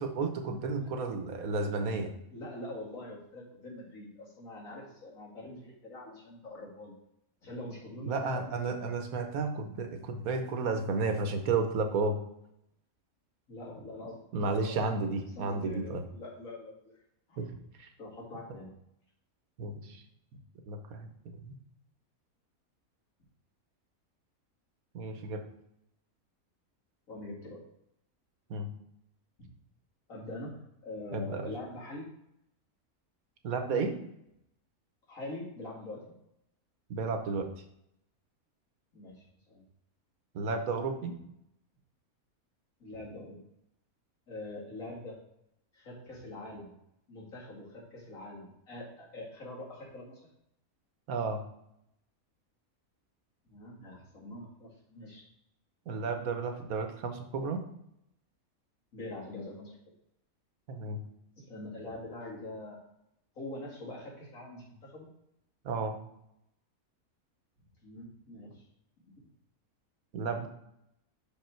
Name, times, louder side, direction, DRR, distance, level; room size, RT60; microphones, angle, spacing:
voice 1, 0.0-2.1 8.0-12.2 14.3-16.0 17.4-17.5 17.8-17.9 19.6-20.0 20.7-21.5 24.9-25.4 28.5-28.7 31.1-31.5 33.4-33.9 36.9-37.5 40.3-41.1 51.1-51.4 55.9-57.6 60.7-61.0 65.6-66.0 70.1-70.5, right 3 dB, 80° right, 6 dB, 1.3 m, -32 dB
voice 2, 2.3-6.9 7.4-8.4 8.8-8.9 13.5-14.8 15.4-16.8 17.3-17.4 18.0-18.7 27.1-27.6 30.1-32.1 35.1-36.1 38.9-39.6 42.8-43.4 44.3-45.2 45.7-46.7 47.1-50.3 53.5-55.2 58.9-59.8 61.5-62.8 63.4-65.1 67.8-68.6, left 1 dB, 70° left, -4 dB, 2.6 m, -44 dB
6.0 x 5.3 x 4.5 m, 0.77 s
omnidirectional pair, 1.5 m